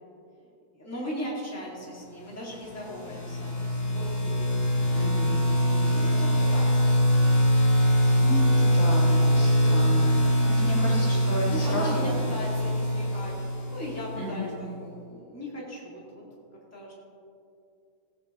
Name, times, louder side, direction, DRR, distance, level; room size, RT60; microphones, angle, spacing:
voice 1, 0.7-3.5 3.9-4.6 5.9-6.6 10.4-13.3 13.7-16.2 16.7-16.9, equal, 10° left, -5 dB, 2.1 m, -38 dB
sound 1, 2.6-14.3, equal, 35° left, 1.9 m, -23 dB
voice 2, 4.9-5.4 5.7-6.0 7.8-12.2 14.1-14.5, left 1 dB, 50° left, -5 dB, 2.5 m, -34 dB
16.5 x 8.8 x 3.1 m, 2.5 s
omnidirectional pair, 1.8 m